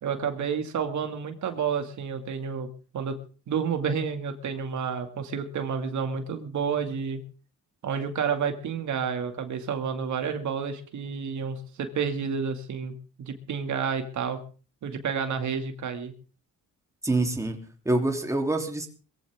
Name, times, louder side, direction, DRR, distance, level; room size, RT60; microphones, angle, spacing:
voice 1, 0.0-2.7 2.9-3.2 3.5-7.2 7.8-12.9 13.2-14.4 14.8-16.1, right 6 dB, 60° right, 6 dB, 2.3 m, -30 dB
voice 2, 17.0-17.6 17.8-18.9, right 2 dB, 10° right, 3 dB, 3.2 m, -25 dB
22.0 x 15.0 x 3.6 m, 0.37 s
cardioid pair, 110°, 32 cm